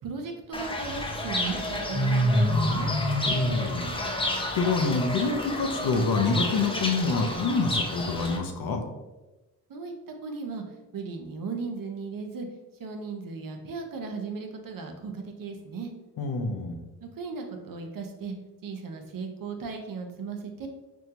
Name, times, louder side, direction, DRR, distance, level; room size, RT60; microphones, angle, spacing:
voice 1, 0.0-2.9 9.7-10.6 10.9-12.5 12.8-15.9 17.0-18.3 18.6-20.7, right 4 dB, 55° right, 4 dB, 0.7 m, -36 dB
Fowl / Bird, 0.5-8.4, left 1 dB, 15° left, 0.6 m, -28 dB
sound 1, 0.8-6.8, left 1 dB, 80° left, 0.9 m, -44 dB
voice 2, 3.2-8.8 16.2-16.7, left 4 dB, 60° left, 4 dB, 0.7 m, -27 dB
4.4 x 2.2 x 2.8 m, 1.1 s
supercardioid pair, 50°, 41 cm